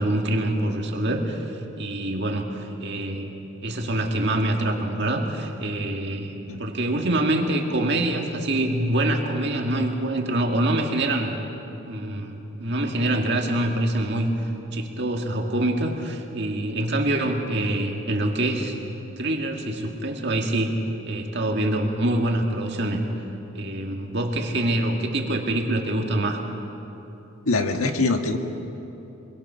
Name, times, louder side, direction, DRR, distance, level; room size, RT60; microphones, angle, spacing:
voice 1, 0.0-1.5 1.8-3.3 3.6-6.3 6.6-11.4 11.9-14.3 14.7-18.8 19.2-20.7 21.1-23.0 23.5-26.4, right 1 dB, 55° right, 2 dB, 2.0 m, -25 dB
voice 2, 27.4-28.4, left 3 dB, 85° left, 4 dB, 1.7 m, -23 dB
26.0 x 22.5 x 5.8 m, 3.0 s
head